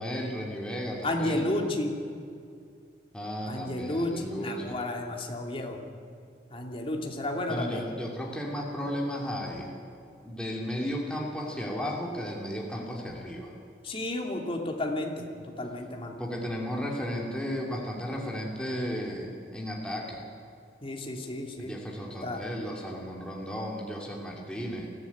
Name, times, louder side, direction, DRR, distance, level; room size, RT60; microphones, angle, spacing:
voice 1, 0.0-1.4 3.1-4.8 7.5-9.7 10.2-13.5 16.2-20.2 21.6-24.9, equal, 5° left, -2 dB, 2.6 m, -34 dB
voice 2, 1.0-1.9 3.5-5.8 6.5-7.9 13.8-16.2 20.8-21.7 22.2-22.4, left 1 dB, 30° left, 1 dB, 2.7 m, -32 dB
22.0 x 15.0 x 9.3 m, 2.4 s
head